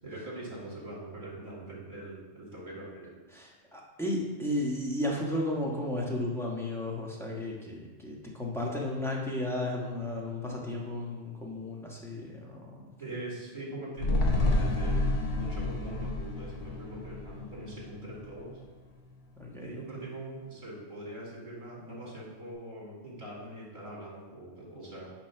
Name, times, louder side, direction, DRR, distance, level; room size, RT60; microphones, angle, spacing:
voice 1, 0.0-3.1 13.0-18.6 19.6-25.1, right 1 dB, 45° right, -5 dB, 2.4 m, -42 dB
voice 2, 3.3-12.8 19.4-19.8, left 1 dB, ahead, -4 dB, 1.3 m, -34 dB
sound 1, 14.0-18.5 18.8-18.9, left 2 dB, 60° left, 1.1 m, -30 dB
9.4 x 3.4 x 5.8 m, 1.3 s
omnidirectional pair, 1.1 m